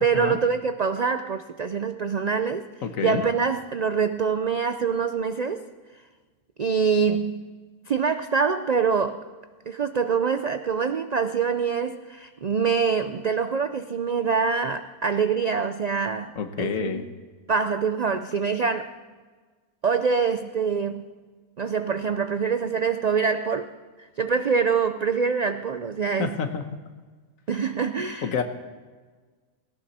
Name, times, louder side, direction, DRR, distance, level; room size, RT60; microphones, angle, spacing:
voice 1, 0.0-2.7 3.0-5.7 6.6-7.5 7.9-9.2 9.7-17.0 17.5-18.9 19.8-21.1 21.6-23.7 24.2-26.4 27.5-28.3, right 5 dB, 85° right, 10 dB, 0.3 m, -25 dB
voice 2, 2.8-3.2 16.4-17.1 26.2-26.6 28.2-28.4, left 6 dB, 70° left, 8 dB, 1.5 m, -28 dB
17.5 x 17.5 x 4.3 m, 1.4 s
omnidirectional pair, 1.4 m